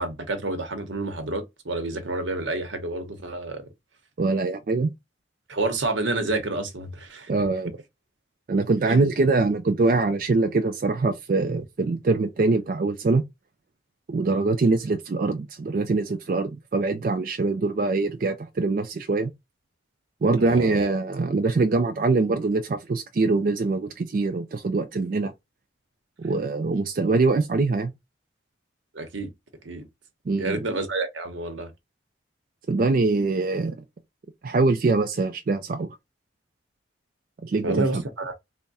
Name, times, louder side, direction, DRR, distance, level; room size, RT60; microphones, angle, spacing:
voice 1, 0.0-3.7 5.5-7.3 8.9-9.0 14.3-14.4 20.4-20.8 28.9-29.3 29.6-29.9 30.4-31.7 37.6-38.3, right 2 dB, 80° right, 0.9 m, -29 dB
voice 2, 4.2-4.9 7.3-7.7 8.5-13.2 14.1-19.3 20.2-25.3 26.2-27.9 30.3-30.6 32.7-33.8 34.4-35.9 37.4-38.0, right 3 dB, 45° right, 0.3 m, -23 dB
3.4 x 2.1 x 4.0 m
head